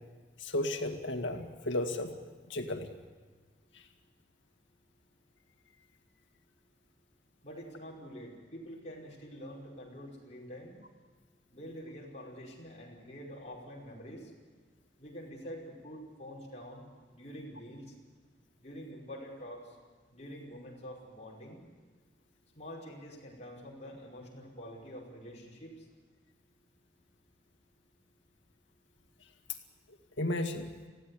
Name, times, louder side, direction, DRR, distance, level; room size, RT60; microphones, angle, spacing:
voice 1, 0.4-2.1 2.5-2.9 3.7-3.8 30.2-30.7, left 1 dB, 90° left, 5 dB, 2.0 m, -33 dB
voice 2, 7.4-10.8 11.5-14.3 15.0-16.9 17.1-17.9 18.6-19.8 20.1-21.6 22.6-25.9, equal, 35° left, -4 dB, 5.2 m, -46 dB
21.0 x 15.5 x 9.7 m, 1.4 s
head